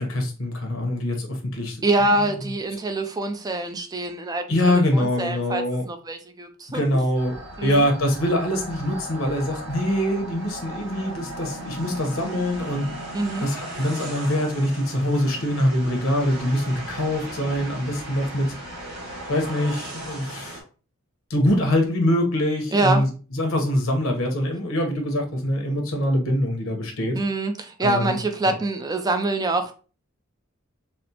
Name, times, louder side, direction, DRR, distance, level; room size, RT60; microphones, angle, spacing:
voice 1, 0.0-2.2 4.5-5.8 6.7-12.9 13.4-18.6 19.3-20.6 21.3-27.2 27.8-28.2 28.5-28.6, left 1 dB, 80° left, 3 dB, 1.0 m, -24 dB
voice 2, 1.8-6.8 7.6-7.8 13.1-13.5 22.7-23.0 27.1-29.7, right 2 dB, 20° right, 7 dB, 0.4 m, -25 dB
sound 1, 7.1-20.6, right 1 dB, 75° right, 1.7 m, -37 dB
4.2 x 2.0 x 2.8 m, 0.36 s
head